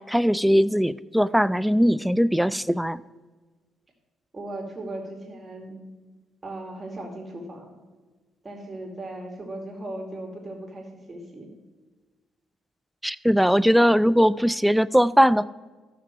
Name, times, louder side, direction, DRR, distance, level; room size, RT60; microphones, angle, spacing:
voice 1, 0.0-3.0 13.0-15.5, equal, ahead, 16 dB, 0.3 m, -20 dB
voice 2, 4.3-5.8 6.4-7.7 8.4-11.5, right 1 dB, 25° right, 1 dB, 2.5 m, -37 dB
14.5 x 6.0 x 4.6 m, 1.3 s
cardioid pair, 90°, 0 cm